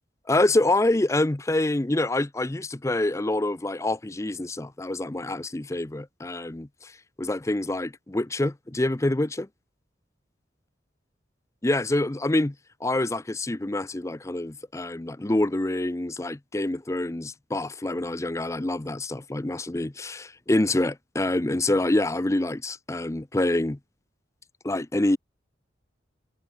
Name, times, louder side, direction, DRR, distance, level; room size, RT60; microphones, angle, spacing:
voice 1, 0.3-6.9 7.2-9.5 11.6-12.5 12.8-23.8 24.6-25.2, left 2 dB, 15° left, 0.5 m, -26 dB
head